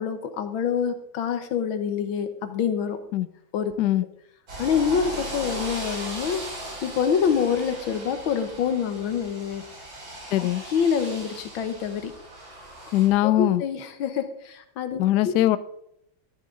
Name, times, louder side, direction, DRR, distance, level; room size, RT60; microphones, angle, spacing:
voice 1, 0.0-3.0 3.5-3.7 4.6-9.6 10.4-12.1 13.2-15.4, left 7 dB, 90° left, 9 dB, 1.8 m, -26 dB
sound 1, 4.5-13.1, right 2 dB, 75° right, 4.3 m, -38 dB
voice 2, 10.3-10.6 12.9-13.6 15.0-15.6, left 14 dB, 75° left, 15 dB, 1.0 m, -21 dB
12.5 x 10.5 x 3.8 m, 0.74 s
omnidirectional pair, 2.1 m